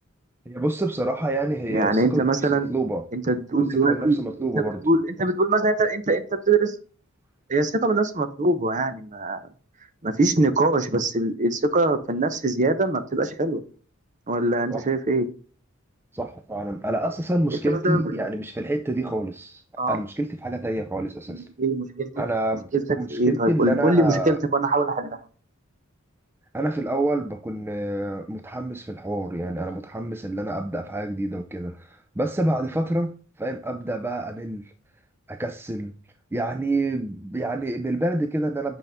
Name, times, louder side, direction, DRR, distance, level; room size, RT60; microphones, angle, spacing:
voice 1, 0.5-3.1 3.7-4.8 14.7-14.9 16.1-21.5 22.2-24.4 26.5-34.7 35.3-35.9 36.3-38.8, right 1 dB, 10° right, 0.4 m, -28 dB
voice 2, 1.7-2.7 3.1-4.2 4.6-6.7 7.5-9.4 10.0-13.6 14.3-15.3 17.7-18.1 19.8-20.0 21.3-22.2 22.7-22.8 23.1-25.2, right 2 dB, 35° right, 0.9 m, -22 dB
8.2 x 5.3 x 3.5 m
head